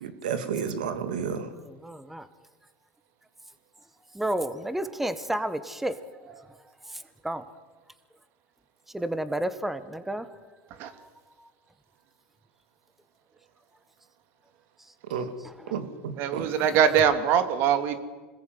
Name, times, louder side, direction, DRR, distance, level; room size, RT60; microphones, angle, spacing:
voice 1, 0.0-1.5 15.1-15.3 15.7-16.5, right 7 dB, 90° right, 9 dB, 2.8 m, -31 dB
voice 2, 1.7-2.2 4.1-6.0 7.2-7.4 8.9-10.2 16.6-16.7, right 1 dB, 5° right, 12 dB, 1.6 m, -30 dB
voice 3, 16.2-18.0, right 8 dB, 55° right, 9 dB, 3.0 m, -22 dB
26.5 x 20.5 x 9.7 m, 1.3 s
supercardioid pair, 115°, 4 cm